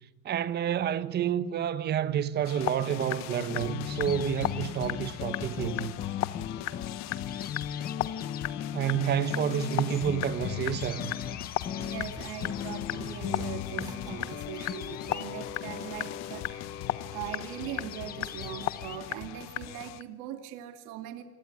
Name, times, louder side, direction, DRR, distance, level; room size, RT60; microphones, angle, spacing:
voice 1, 0.2-5.9 8.7-11.1, right 10 dB, 30° right, 1.2 m, -29 dB
sound 1, 2.4-20.0, left 15 dB, 55° left, 1.1 m, -37 dB
sound 2, 3.5-19.2, left 9 dB, 30° left, 1.0 m, -38 dB
voice 2, 11.8-16.8 17.1-21.2, right 11 dB, 70° right, 2.6 m, -41 dB
Run, 11.9-16.6, right 1 dB, 10° right, 5.0 m, -48 dB
27.5 x 21.0 x 9.8 m
cardioid pair, 170°, 31 cm